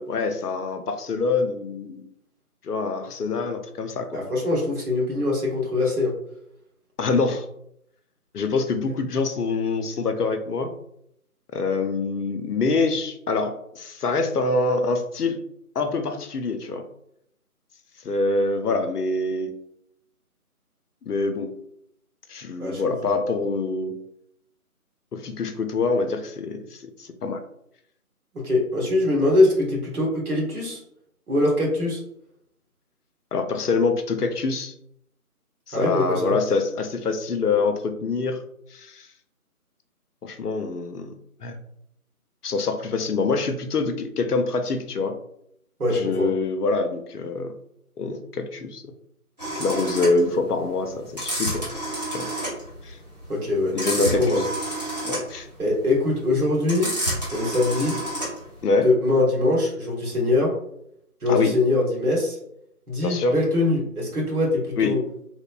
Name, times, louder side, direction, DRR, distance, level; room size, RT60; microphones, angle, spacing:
voice 1, 0.0-2.0 2.6-4.2 7.0-7.5 8.3-10.7 11.5-15.4 15.8-16.8 18.0-19.5 21.0-21.5 22.3-24.0 25.1-27.4 33.3-34.7 35.7-38.4 38.7-39.1 40.2-41.1 41.4-41.6 42.4-45.2 45.9-47.6 48.0-48.8 49.5-51.7 52.1-52.3 52.8-53.0 53.7-54.4 55.0-55.5 58.6-58.9 61.3-61.6 63.0-63.3 64.8-65.0, left 3 dB, 85° left, 7 dB, 0.6 m, -25 dB
voice 2, 4.1-6.2 22.6-22.9 28.3-30.8 31.3-32.0 35.7-36.4 45.8-46.3 53.3-54.4 55.6-56.9 57.3-58.0 58.8-60.6 61.2-62.4 62.9-65.0, left 2 dB, 75° right, -2 dB, 1.3 m, -23 dB
sound 1, 49.4-58.6, right 1 dB, 30° right, 0.8 m, -29 dB
3.0 x 2.1 x 2.3 m, 0.74 s
figure-of-eight pair, 160°, 45 cm